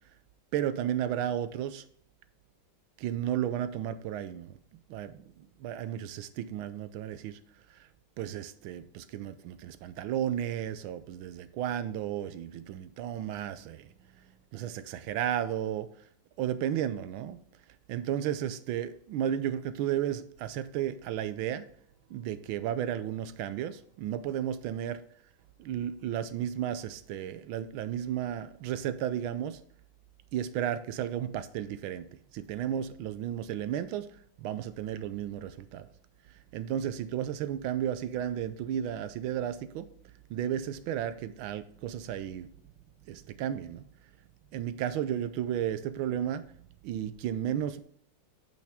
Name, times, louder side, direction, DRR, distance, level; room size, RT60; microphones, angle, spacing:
voice 1, 0.5-1.8 3.0-4.5 4.9-7.4 7.7-7.9 8.2-15.9 16.4-17.4 17.9-21.7 22.1-25.0 25.6-29.6 30.3-35.9 36.3-39.9 40.3-42.5 43.1-43.8 44.5-46.5 46.8-47.8, right 10 dB, 75° right, 12 dB, 1.4 m, -33 dB
9.1 x 5.6 x 3.5 m, 0.64 s
omnidirectional pair, 2.3 m